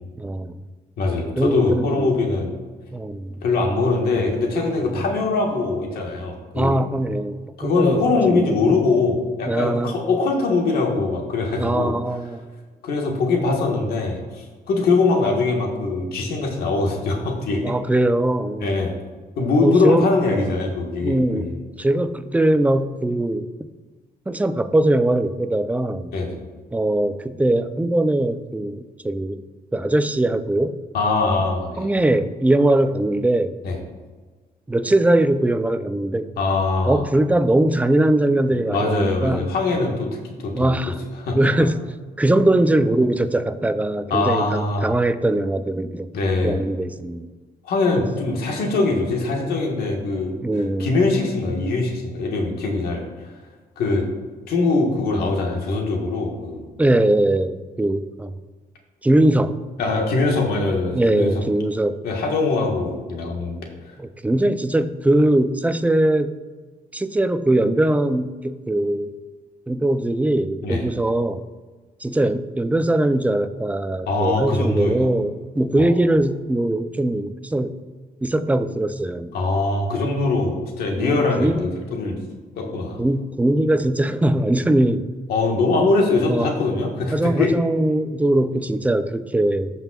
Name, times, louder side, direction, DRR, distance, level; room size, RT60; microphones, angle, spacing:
voice 1, 0.2-0.6 1.4-2.1 2.9-3.3 4.8-5.0 6.5-8.4 9.5-10.0 11.6-12.5 17.6-18.7 19.6-20.1 21.0-21.5 21.8-23.5 24.3-26.1 26.7-29.4 29.7-30.8 31.8-33.6 34.7-36.3 36.9-39.5 40.6-41.0 41.3-41.8 42.2-46.1 46.4-47.3 50.4-50.9 56.8-58.3 59.0-59.6 60.9-62.0 64.0-66.3 66.9-69.1 69.7-71.4 72.0-77.8 78.2-79.3 81.0-81.7 83.0-85.0 86.2-86.5 87.1-89.7, right 1 dB, 10° right, 10 dB, 0.5 m, -21 dB
voice 2, 1.0-2.5 3.4-6.8 7.6-11.9 12.8-17.7 18.6-18.9 19.4-21.5 26.1-26.4 30.9-31.9 33.6-33.8 36.4-37.0 38.5-40.1 40.4-40.8 41.2-41.4 44.1-44.9 46.1-46.6 47.6-50.3 50.8-53.3 53.8-54.1 54.5-56.6 59.8-61.4 62.0-63.6 70.6-70.8 74.1-75.1 75.8-76.0 79.3-82.2 82.6-83.0 85.3-87.6, left 3 dB, 80° left, 1 dB, 1.6 m, -22 dB
14.0 x 5.5 x 2.4 m, 1.3 s
cardioid pair, 85°, 16 cm